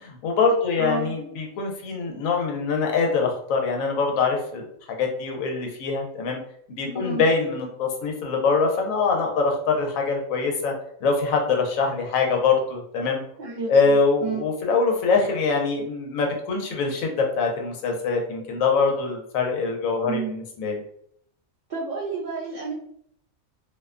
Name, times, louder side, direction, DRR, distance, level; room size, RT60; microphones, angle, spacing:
voice 1, 0.0-6.4 6.8-10.7 11.0-13.2 13.7-20.8, left 4 dB, 85° left, 2 dB, 1.0 m, -24 dB
voice 2, 0.7-1.2 6.9-7.3 13.4-14.4 20.0-20.3 21.7-22.7, right 4 dB, 75° right, -6 dB, 0.4 m, -31 dB
2.5 x 2.1 x 2.3 m, 0.69 s
omnidirectional pair, 1.4 m